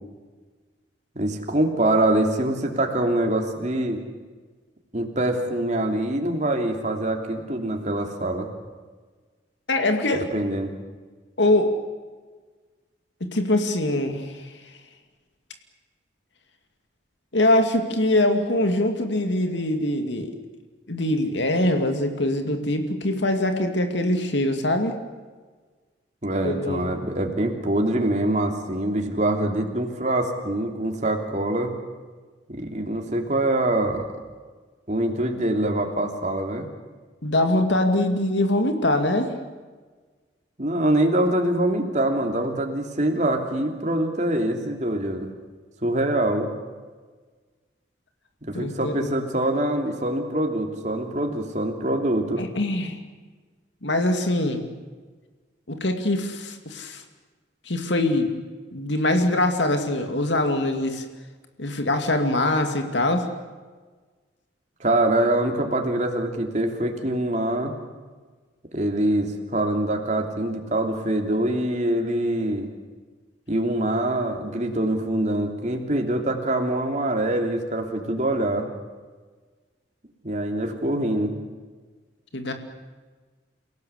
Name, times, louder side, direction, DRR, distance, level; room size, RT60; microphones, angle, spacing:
voice 1, 1.1-4.0 4.9-8.5 10.1-10.7 26.2-31.7 32.5-34.1 34.9-36.7 40.6-45.3 45.8-46.5 48.4-52.4 64.8-67.7 68.7-72.7 73.5-78.7 80.2-81.3, right 1 dB, 40° right, 3 dB, 3.1 m, -24 dB
voice 2, 9.7-10.2 11.4-11.7 13.2-14.4 17.3-20.3 20.9-25.0 26.4-26.9 37.2-39.3 48.5-49.1 52.4-53.0 53.8-54.6 55.7-57.0 57.7-58.3 58.7-61.0 61.6-63.3 82.3-82.5, left 1 dB, 75° left, 6 dB, 2.5 m, -23 dB
29.0 x 17.5 x 8.3 m, 1.4 s
head